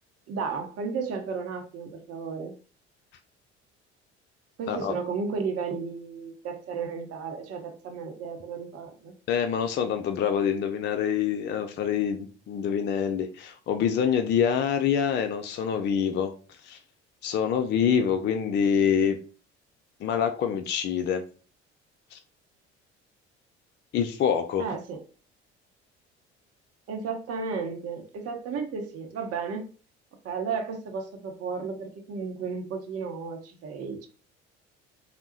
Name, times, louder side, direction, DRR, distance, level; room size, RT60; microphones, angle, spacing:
voice 1, 0.3-2.5 4.6-9.1 24.6-25.0 26.9-29.7 30.2-34.1, right 5 dB, 45° right, 5 dB, 0.7 m, -33 dB
voice 2, 9.3-16.3 16.6-16.8 17.2-19.2 20.0-21.2 22.1-22.2 23.9-24.7, left 8 dB, 35° left, 7 dB, 0.4 m, -26 dB
3.4 x 2.0 x 2.7 m, 0.37 s
figure-of-eight pair, 55°, 34 cm